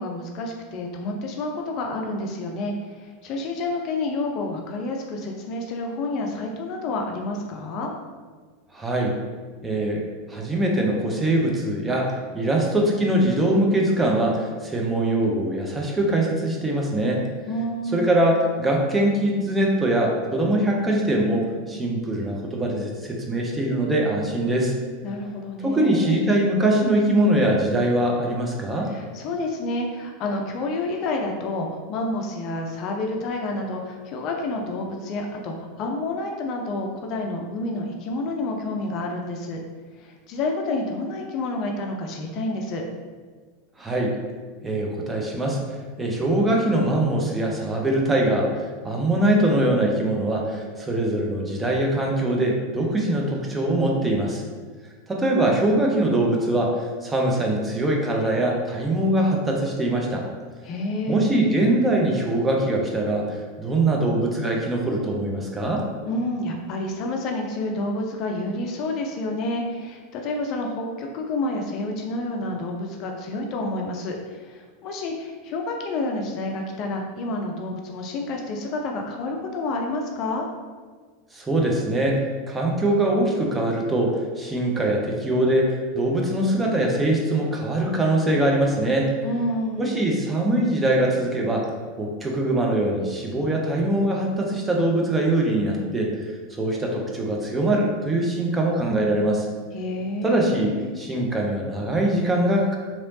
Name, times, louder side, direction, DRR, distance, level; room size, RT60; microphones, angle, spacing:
voice 1, 0.0-7.9 17.5-18.2 25.0-26.3 28.9-39.6 40.0-42.8 60.6-61.1 66.1-80.5 89.2-89.9 99.7-100.9, left 2 dB, 45° left, 2 dB, 0.4 m, -29 dB
voice 2, 8.7-9.2 9.6-10.0 10.3-17.2 17.9-24.7 25.6-28.9 43.8-44.2 44.6-45.6 46.0-54.4 55.1-60.2 61.1-65.8 81.3-89.1 89.8-91.7 92.0-96.1 96.6-99.5 100.2-102.8, right 1 dB, 15° right, -1 dB, 0.6 m, -22 dB
3.0 x 2.9 x 2.7 m, 1.5 s
figure-of-eight pair, 85°, 0 cm